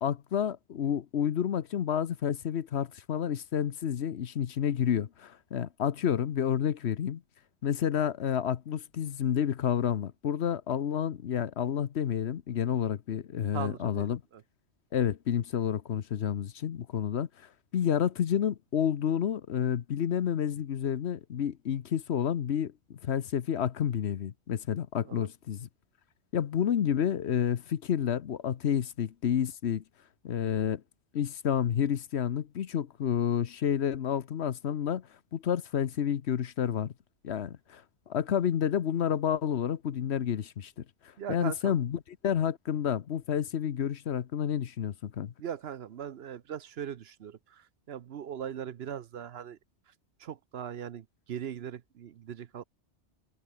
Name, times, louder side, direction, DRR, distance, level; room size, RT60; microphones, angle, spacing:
voice 1, 0.0-7.2 7.6-14.2 14.9-25.7 26.3-29.8 30.2-30.8 31.1-36.9 37.2-40.8 41.3-45.3, left 9 dB, 70° left, 1.1 m, -30 dB
voice 2, 13.5-14.4 25.0-25.3 41.2-41.8 45.4-49.6 50.2-52.6, right 9 dB, 65° right, 0.9 m, -40 dB
omnidirectional pair, 1.2 m